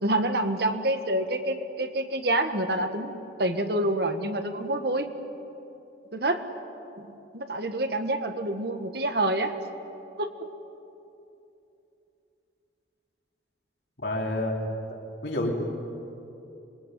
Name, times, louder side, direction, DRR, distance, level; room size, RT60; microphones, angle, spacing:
voice 1, 0.0-5.1 6.1-6.5 7.0-7.1 7.3-9.5 10.2-10.3, right 1 dB, 60° right, 7 dB, 1.6 m, -27 dB
voice 2, 14.0-14.6 15.2-15.5, left 1 dB, 65° left, -1 dB, 3.9 m, -28 dB
27.0 x 21.5 x 9.3 m, 2.9 s
head